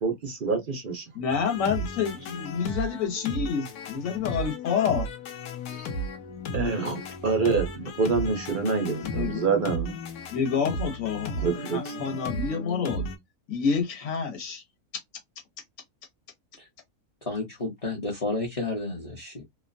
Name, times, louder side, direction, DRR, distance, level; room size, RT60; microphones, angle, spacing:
voice 1, 0.0-1.0 5.7-5.9 6.5-10.0 11.4-12.2, right 4 dB, 60° right, 0.5 m, -27 dB
voice 2, 1.1-5.1 9.1-9.4 10.3-11.4 11.7-13.0 13.5-14.6, left 6 dB, 60° left, 1.4 m, -28 dB
sound 1, 1.3-13.2, equal, 85° left, 1.1 m, -35 dB
voice 3, 17.2-19.4, left 3 dB, 30° left, 0.7 m, -31 dB
2.9 x 2.2 x 2.5 m
omnidirectional pair, 1.6 m